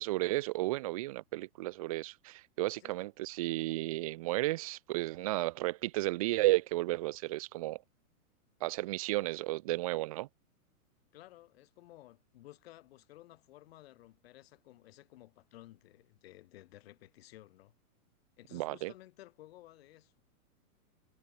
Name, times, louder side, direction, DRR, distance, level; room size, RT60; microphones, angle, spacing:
voice 1, 0.0-7.8 8.6-10.3 18.5-18.9, right 18 dB, 25° right, 0.8 m, -33 dB
voice 2, 11.1-17.7 18.4-20.2, left 15 dB, 45° left, 6.1 m, -55 dB
hypercardioid pair, 170°, 44 cm